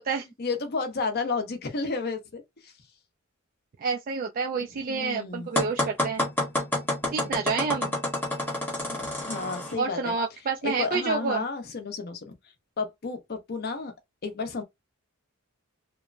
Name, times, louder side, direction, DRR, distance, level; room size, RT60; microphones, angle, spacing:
voice 1, 0.4-2.7 4.9-5.5 8.9-10.1 10.6-12.3 12.8-13.9 14.2-14.6, left 4 dB, 50° left, 0.7 m, -32 dB
voice 2, 3.8-6.2 7.1-7.9 9.8-11.4, right 5 dB, 40° right, 0.4 m, -29 dB
sound 1, 5.6-9.8, left 1 dB, 10° left, 0.9 m, -28 dB
3.0 x 2.1 x 2.5 m
head